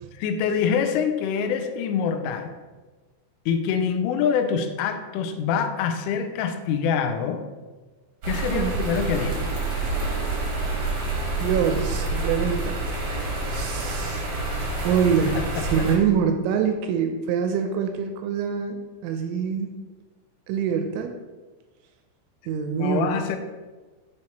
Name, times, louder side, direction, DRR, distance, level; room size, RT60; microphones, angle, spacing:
voice 1, 0.2-2.5 3.5-7.4 8.2-9.5 15.3-15.9 22.7-23.4, left 7 dB, 90° left, 7 dB, 3.1 m, -25 dB
sound 1, 8.2-15.9, right 2 dB, 70° right, 1.6 m, -28 dB
voice 2, 11.4-12.8 13.4-14.3 14.8-19.7 20.5-21.2 22.5-23.2, right 7 dB, 85° right, 5 dB, 2.8 m, -25 dB
9.7 x 4.5 x 2.9 m, 1.2 s
omnidirectional pair, 5.6 m